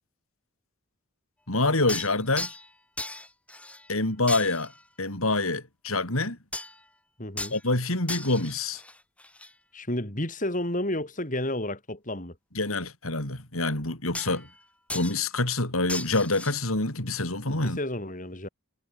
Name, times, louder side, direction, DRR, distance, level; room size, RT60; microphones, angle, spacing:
voice 1, 1.5-2.6 3.9-4.7 5.0-6.4 7.5-8.8 12.6-14.5 14.9-17.8, left 2 dB, 85° left, 5.5 m, -26 dB
sound 1, 1.9-2.7 3.0-3.9 4.3-4.8 6.5-6.8 7.4-7.6 8.1-9.5 14.1-14.6 14.9-15.2 15.9-16.6, left 2 dB, 5° left, 7.1 m, -37 dB
voice 2, 7.2-7.5 9.7-12.3 17.5-18.5, left 1 dB, 40° left, 5.0 m, -31 dB
head